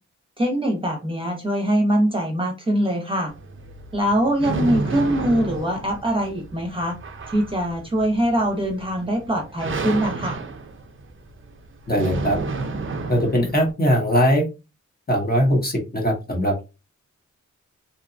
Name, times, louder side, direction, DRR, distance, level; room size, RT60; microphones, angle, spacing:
voice 1, 0.4-3.3 3.9-7.0 7.3-10.4, equal, 20° right, 2 dB, 0.8 m, -23 dB
sound 1, 3.3-13.7, right 3 dB, 45° right, 0.5 m, -31 dB
voice 2, 11.9-12.4 13.1-14.4 15.1-16.6, equal, 30° left, 0 dB, 0.8 m, -20 dB
2.8 x 2.2 x 2.5 m, 0.28 s
wide cardioid pair, 80°, 30 cm